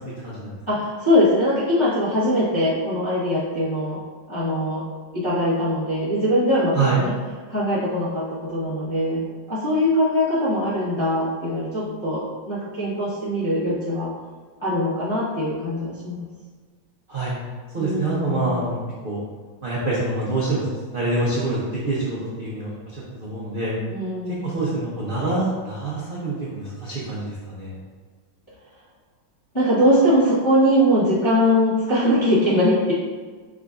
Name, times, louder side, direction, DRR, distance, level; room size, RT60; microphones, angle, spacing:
voice 1, 0.7-4.0 4.3-4.8 5.1-7.1 7.5-9.2 9.5-14.1 14.6-16.3 17.8-18.7 23.9-24.6 29.5-32.9, equal, 25° left, -10 dB, 0.6 m, -21 dB
voice 2, 17.7-18.8 19.0-19.2 19.6-20.7 20.9-22.8 23.2-23.7 24.4-27.7, right 3 dB, 50° right, -7 dB, 0.6 m, -25 dB
4.9 x 2.6 x 3.5 m, 1.5 s
omnidirectional pair, 2.0 m